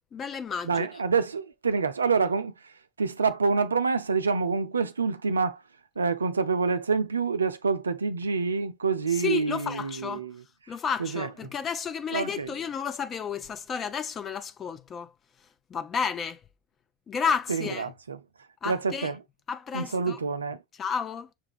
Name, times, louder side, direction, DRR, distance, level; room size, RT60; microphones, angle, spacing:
voice 1, 0.1-0.9 9.1-10.3 10.7-15.1 15.7-16.4 17.1-17.9 18.6-19.1 19.5-20.2 20.8-21.3, left 6 dB, 35° left, 0.6 m, -32 dB
voice 2, 0.6-5.6 6.0-10.4 11.0-11.3 12.1-12.5 17.5-18.2 18.7-19.2 19.7-20.6, right 5 dB, 90° right, 0.3 m, -27 dB
6.1 x 2.3 x 3.3 m
hypercardioid pair, 80°, 0 cm